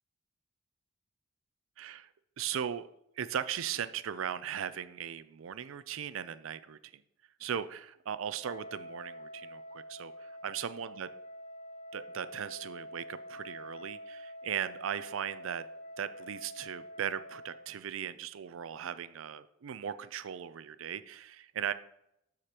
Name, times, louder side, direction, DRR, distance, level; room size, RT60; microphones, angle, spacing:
voice 1, 1.8-2.1 2.4-2.9 3.2-7.0 7.4-11.1 11.9-15.7 16.0-21.7, right 8 dB, 75° right, 14 dB, 0.4 m, -38 dB
Wind instrument woodwind instrument, 8.4-17.7, equal, 35° left, 0.5 m, -47 dB
12.5 x 5.0 x 2.9 m, 0.79 s
head